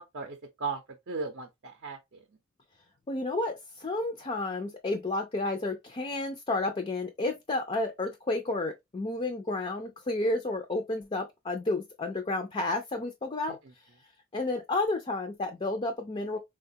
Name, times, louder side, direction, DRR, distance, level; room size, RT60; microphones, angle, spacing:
voice 1, 0.0-2.2 13.5-13.6, right 4 dB, 50° right, 0.6 m, -37 dB
voice 2, 3.1-13.6 14.3-16.4, left 2 dB, 25° left, 0.4 m, -31 dB
4.1 x 2.3 x 2.7 m
head